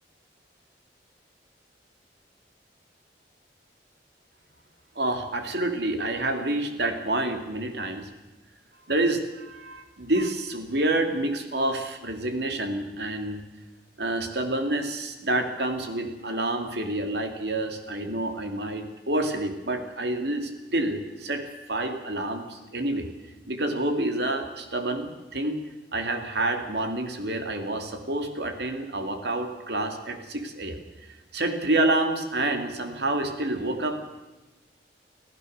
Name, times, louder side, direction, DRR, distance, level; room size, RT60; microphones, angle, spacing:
voice 1, 5.0-8.1 8.9-13.4 14.0-21.4 21.7-23.1 23.5-25.6 25.9-30.8 31.3-34.0, right 2 dB, 70° right, 5 dB, 2.6 m, -28 dB
26.5 x 15.5 x 6.6 m, 1.1 s
head